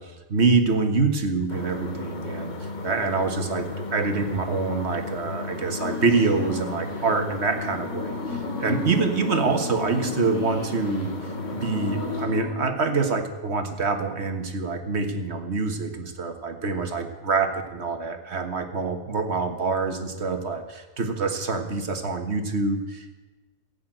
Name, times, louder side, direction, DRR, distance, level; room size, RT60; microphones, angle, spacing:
voice 1, 0.0-11.1 11.5-23.1, right 4 dB, 50° right, 6 dB, 1.7 m, -26 dB
sound 1, 1.5-12.3, left 2 dB, 35° left, 1.2 m, -34 dB
sound 2, 5.8-12.7, left 4 dB, 65° left, 3.5 m, -34 dB
16.0 x 8.6 x 9.0 m, 1.2 s
omnidirectional pair, 1.4 m